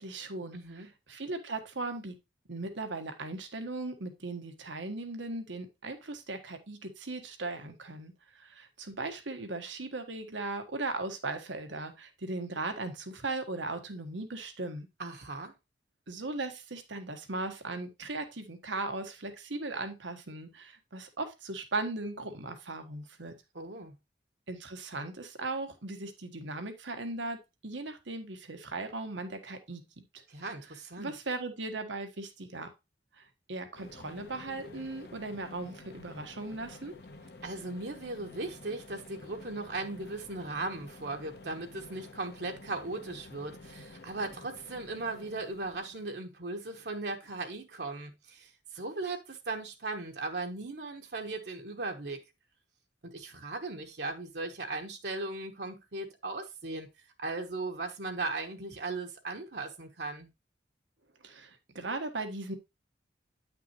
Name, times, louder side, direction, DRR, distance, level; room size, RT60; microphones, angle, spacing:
voice 1, 0.0-2.1 2.5-14.9 16.1-23.3 24.5-30.0 31.0-32.7 33.2-33.3 33.5-37.0 61.2-62.6, right 2 dB, 85° right, 1.4 m, -38 dB
voice 2, 0.5-0.9 15.0-15.5 23.5-24.0 30.3-31.1 37.4-52.2 53.0-56.9 57.2-60.3, right 3 dB, 65° right, 1.2 m, -38 dB
sound 1, 33.7-46.1, left 2 dB, 60° left, 1.0 m, -51 dB
9.5 x 5.9 x 3.0 m
head